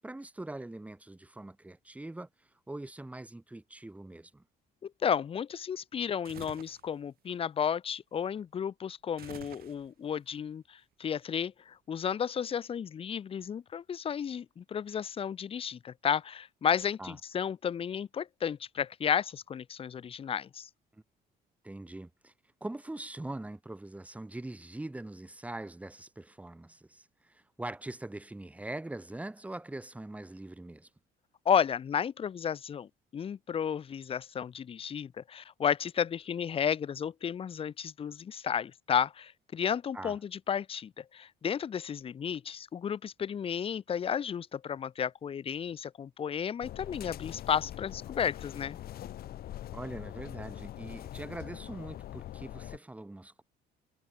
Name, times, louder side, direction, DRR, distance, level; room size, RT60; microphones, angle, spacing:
voice 1, 0.0-4.4 17.0-17.2 20.9-21.0 21.6-22.3 22.6-30.9 39.9-40.2 49.7-53.4, right 2 dB, 10° right, 1.5 m, -42 dB
voice 2, 4.8-20.7 31.5-48.8, left 8 dB, 35° left, 0.7 m, -33 dB
sound 1, 6.2-6.9 9.2-10.1, right 12 dB, 65° right, 2.3 m, -49 dB
sound 2, 46.6-52.8, left 12 dB, 65° left, 2.5 m, -43 dB
cardioid pair, 110°, 17 cm